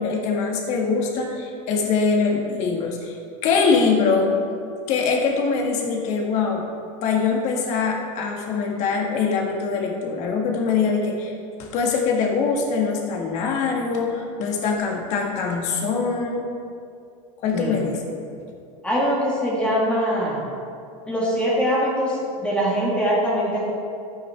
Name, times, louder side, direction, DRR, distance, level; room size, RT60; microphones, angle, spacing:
voice 1, 0.0-3.2 3.4-4.4 4.9-6.7 7.0-11.3 11.6-16.5 17.4-18.0, left 5 dB, 40° left, 1 dB, 1.7 m, -23 dB
voice 2, 17.5-17.8 18.8-20.5 21.1-23.7, equal, 5° left, -6 dB, 1.6 m, -22 dB
11.5 x 9.1 x 3.4 m, 2.4 s
supercardioid pair, 150°, 18 cm